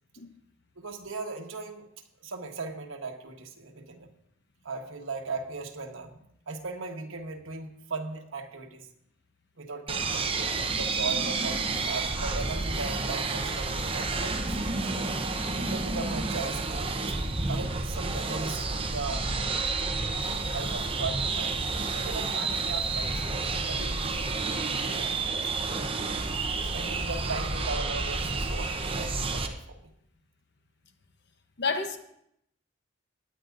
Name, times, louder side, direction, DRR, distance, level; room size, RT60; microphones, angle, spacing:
voice 1, 0.8-1.9 2.2-4.1 4.6-8.9 9.6-14.9 15.6-16.9 17.5-19.3 19.7-19.9 20.2-23.2 23.7-24.3 24.8-25.5 26.6-29.9, right 3 dB, 80° right, 1.2 m, -38 dB
sound 1, 9.9-29.5, right 3 dB, 25° right, 0.8 m, -30 dB
voice 2, 31.6-32.0, left 4 dB, 55° left, 0.9 m, -29 dB
20.5 x 9.4 x 2.6 m
head